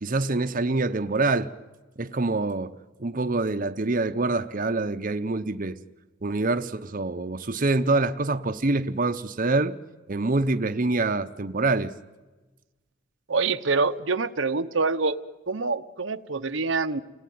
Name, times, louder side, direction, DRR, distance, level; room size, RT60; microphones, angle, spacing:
voice 1, 0.0-1.5 2.0-2.7 3.0-5.8 6.2-9.8 10.1-11.9, right 3 dB, 45° right, 0.9 m, -25 dB
voice 2, 13.3-15.2 15.5-17.0, right 4 dB, 75° right, 1.0 m, -25 dB
29.5 x 19.5 x 9.5 m
head